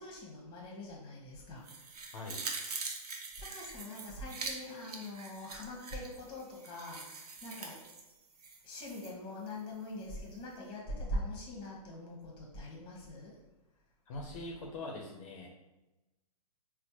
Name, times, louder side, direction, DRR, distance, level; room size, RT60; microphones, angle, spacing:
voice 1, 0.0-1.6 3.4-7.8 8.6-13.4, left 1 dB, 25° left, -2 dB, 1.1 m, -43 dB
sound 1, 1.6-9.1 9.5-9.6, right 4 dB, 80° right, 0.7 m, -44 dB
voice 2, 2.1-2.4 14.1-15.5, left 2 dB, 55° left, -1 dB, 0.7 m, -42 dB
4.3 x 2.1 x 2.9 m, 1.0 s
hypercardioid pair, 135°, 19 cm